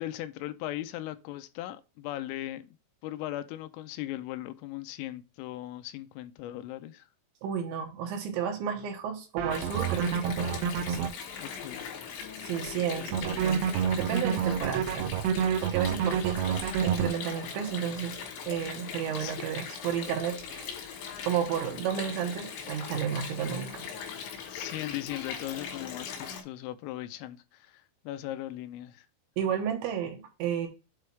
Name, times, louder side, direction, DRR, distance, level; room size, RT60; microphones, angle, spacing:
voice 1, 0.0-2.7 3.0-7.1 11.4-11.9 12.7-13.1 19.2-19.4 24.5-29.1, left 14 dB, 85° left, 3.2 m, -38 dB
voice 2, 7.4-10.6 10.9-11.1 12.4-15.2 15.6-18.2 18.5-20.9 21.2-23.8 29.4-30.7, right 8 dB, 70° right, 3.3 m, -32 dB
sound 1, 9.4-11.1 13.1-17.1, right 7 dB, 90° right, 3.4 m, -28 dB
Water, 9.5-26.4, left 7 dB, 65° left, 3.8 m, -40 dB
8.4 x 3.2 x 4.7 m
omnidirectional pair, 5.8 m